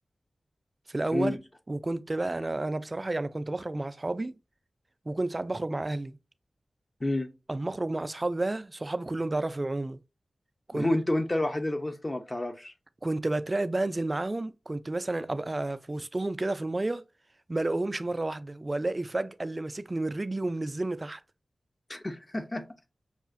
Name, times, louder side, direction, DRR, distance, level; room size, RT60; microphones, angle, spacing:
voice 1, 0.9-1.4 1.7-4.3 5.1-6.2 7.5-10.0 10.7-10.9 13.0-17.0 17.5-21.2, right 2 dB, 35° right, 0.3 m, -31 dB
voice 2, 7.0-7.3 10.7-12.7 21.9-22.6, left 1 dB, 30° left, 0.6 m, -29 dB
5.5 x 2.4 x 2.5 m
cardioid pair, 50°, 0 cm